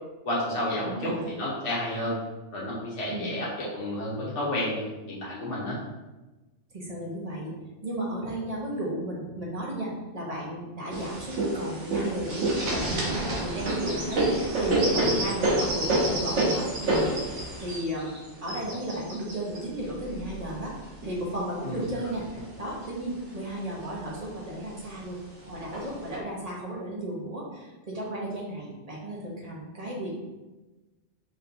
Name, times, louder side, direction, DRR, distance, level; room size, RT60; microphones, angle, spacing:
voice 1, 0.2-2.1 2.5-4.8 5.1-5.8 15.0-15.2 21.6-21.8, left 1 dB, 80° left, -6 dB, 1.4 m, -31 dB
voice 2, 0.8-1.2 3.1-3.3 6.7-7.5 7.8-20.7 21.0-22.2 22.6-25.2 25.4-30.1, right 1 dB, 35° right, -4 dB, 1.0 m, -34 dB
sound 1, 10.9-21.2 21.8-22.8 23.2-23.3 23.5-24.2 25.0-25.1 25.7-26.2, right 1 dB, 75° right, 1.2 m, -28 dB
5.3 x 3.4 x 2.6 m, 1.1 s
omnidirectional pair, 1.2 m